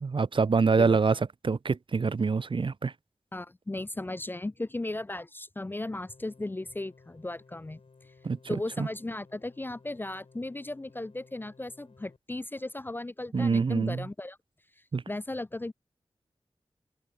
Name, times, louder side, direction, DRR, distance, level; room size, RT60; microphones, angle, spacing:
voice 1, 0.0-2.9 8.2-8.9 13.3-14.1 14.9-15.0, right 4 dB, 55° right, 0.6 m, -26 dB
voice 2, 3.3-7.8 8.5-14.4 15.1-15.7, left 2 dB, 20° left, 0.3 m, -36 dB
sound 1, 5.8-12.2, left 4 dB, 70° left, 4.0 m, -58 dB
open air
wide cardioid pair, 75°, 10 cm